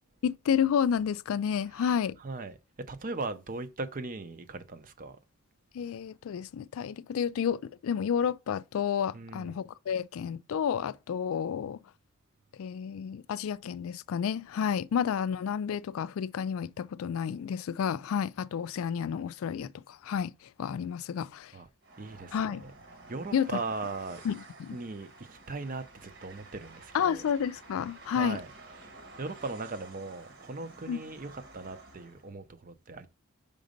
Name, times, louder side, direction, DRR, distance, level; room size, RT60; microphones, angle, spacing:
voice 1, 0.2-2.2 5.7-11.8 12.6-21.6 22.3-22.7 23.3-23.5 24.2-24.3 24.6-24.8 26.9-28.4 30.9-31.0, left 7 dB, 70° left, 0.3 m, -30 dB
voice 2, 2.2-5.2 9.1-9.6 21.5-21.7 22.0-22.7 23.1-24.2 24.7-27.2 28.1-28.5 28.8-33.1, right 3 dB, 40° right, 0.6 m, -39 dB
Train, 21.8-32.3, right 2 dB, 60° right, 1.2 m, -52 dB
5.2 x 3.8 x 5.1 m
head